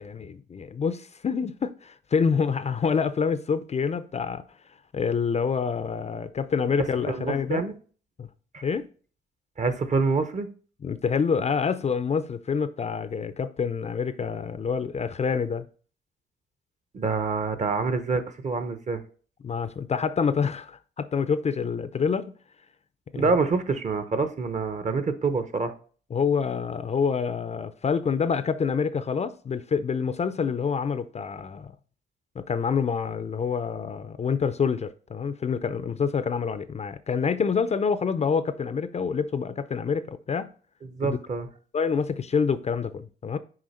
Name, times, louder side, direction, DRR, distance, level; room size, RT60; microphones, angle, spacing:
voice 1, 0.0-4.4 4.9-7.6 8.2-8.3 8.6-8.9 10.8-15.7 19.4-22.3 23.1-23.4 26.1-31.7 32.4-40.5 41.0-41.2 41.7-43.4, left 6 dB, 35° left, 0.5 m, -27 dB
voice 2, 7.1-7.7 8.5-8.6 9.6-10.5 16.9-19.0 23.1-25.7 40.9-41.5, right 4 dB, 35° right, 0.9 m, -26 dB
6.4 x 4.5 x 4.2 m
cardioid pair, 90°, 20 cm